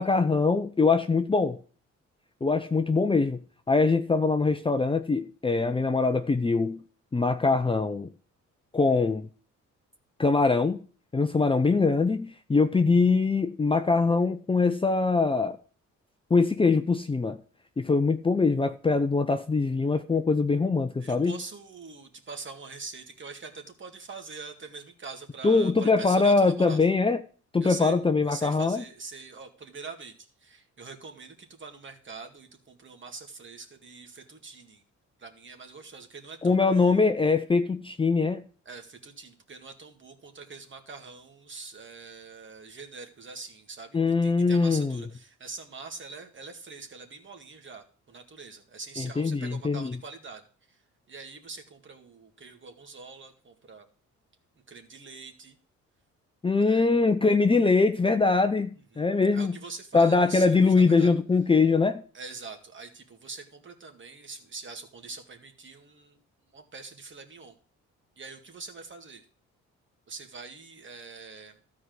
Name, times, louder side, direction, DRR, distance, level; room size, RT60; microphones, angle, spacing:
voice 1, 0.0-1.6 2.4-3.4 3.7-6.8 7.1-8.1 8.7-9.3 10.2-10.8 11.1-15.6 16.3-17.4 17.8-21.4 25.4-27.2 27.5-28.8 36.4-38.4 43.9-45.0 49.0-50.0 56.4-59.5 59.9-62.0, left 4 dB, 15° left, 0.6 m, -23 dB
voice 2, 21.0-26.9 27.6-28.0 28.3-34.8 35.2-37.0 38.7-50.4 50.7-50.8 51.1-53.9 54.7-55.6 56.6-56.9 58.9-61.1 62.1-66.2 66.5-67.5 68.2-69.2 70.1-71.6, right 4 dB, 40° right, 2.2 m, -44 dB
13.0 x 4.8 x 7.8 m
cardioid pair, 90°, 30 cm